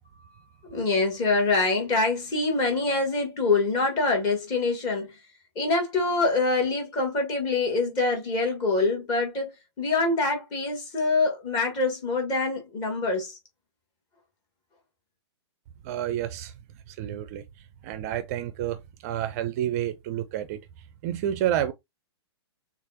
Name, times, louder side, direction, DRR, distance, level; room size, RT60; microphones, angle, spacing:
voice 1, 0.7-5.2 5.6-13.4, left 3 dB, 30° left, 1.9 m, -25 dB
voice 2, 15.8-16.5 16.9-17.4 17.8-20.6 21.0-21.7, right 11 dB, 35° right, 0.5 m, -29 dB
6.4 x 2.4 x 2.8 m
figure-of-eight pair, 115°, 15 cm